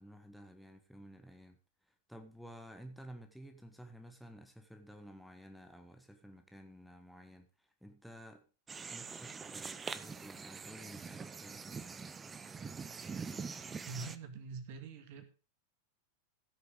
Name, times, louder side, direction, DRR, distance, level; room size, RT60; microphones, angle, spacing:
voice 1, 0.0-1.6 1.9-8.4 8.9-12.2, equal, ahead, 1.4 m, -53 dB
sound 1, 8.7-14.2, right 5 dB, 15° right, 0.7 m, -44 dB
voice 2, 13.9-15.2, right 4 dB, 50° right, 1.9 m, -44 dB
15.5 x 6.7 x 5.0 m
figure-of-eight pair, 90°, 0 cm